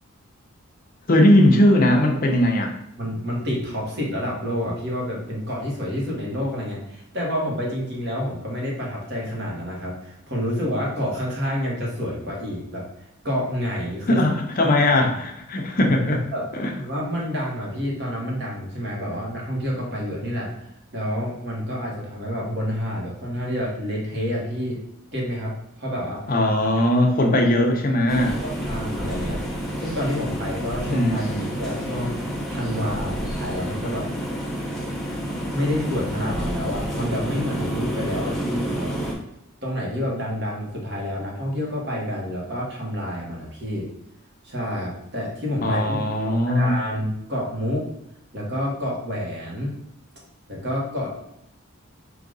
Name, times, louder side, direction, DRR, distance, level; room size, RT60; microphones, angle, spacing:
voice 1, 1.1-2.7 14.1-16.2 16.5-16.7 26.3-28.4 30.9-31.5 45.6-46.7, left 1 dB, 40° left, 2 dB, 0.6 m, -19 dB
voice 2, 3.0-12.9 13.2-14.2 14.6-15.0 16.3-16.4 16.8-20.5 20.9-24.8 25.1-26.2 28.4-29.4 29.8-32.2 32.5-34.1 35.5-38.9 39.6-43.9 44.4-47.8 48.3-49.7 50.5-51.1, equal, 50° right, -3 dB, 1.4 m, -28 dB
sound 1, 28.1-39.1, equal, ahead, 0.9 m, -29 dB
4.9 x 2.8 x 3.9 m, 0.81 s
head